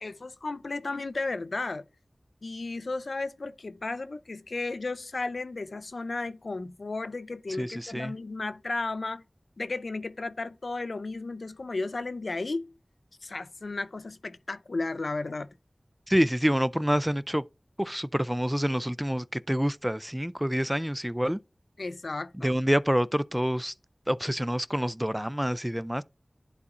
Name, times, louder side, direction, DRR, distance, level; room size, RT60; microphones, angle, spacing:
voice 1, 0.0-1.8 2.4-9.2 9.6-12.7 13.2-15.5 21.8-22.5, left 3 dB, 85° left, 0.4 m, -34 dB
voice 2, 7.6-8.1 16.1-17.4 17.8-21.4 22.4-23.7 24.1-26.0, equal, 5° right, 0.3 m, -27 dB
11.0 x 4.1 x 2.5 m
wide cardioid pair, 45°, 0 cm